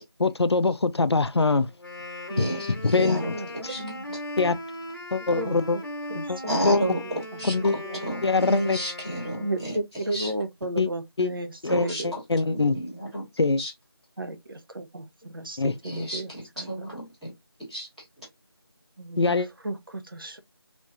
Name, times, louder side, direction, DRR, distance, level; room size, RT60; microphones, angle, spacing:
voice 1, 0.2-1.7 2.8-3.2 4.4-4.6 5.1-5.8 6.2-6.4 6.6-6.8 7.4-7.8 8.2-8.8 10.8-10.9 11.2-11.3 11.6-12.8 13.4-13.6 15.6-15.7 19.2-19.5, left 3 dB, 80° left, 0.4 m, -23 dB
Wind instrument woodwind instrument, 1.7-9.8, left 1 dB, 50° left, 1.4 m, -38 dB
voice 2, 2.4-3.3 3.7-3.8 6.4-7.5 7.9-9.7 10.1-10.3 11.7-12.2 12.7-13.3 13.6-13.7 15.8-17.3 17.7-17.9, right 1 dB, ahead, 1.4 m, -31 dB
voice 3, 3.0-4.0 5.3-5.8 6.1-8.0 9.4-12.1 12.4-12.8 14.2-16.9 19.0-20.4, right 2 dB, 60° right, 0.7 m, -35 dB
3.2 x 3.1 x 2.5 m
figure-of-eight pair, 165°, 14 cm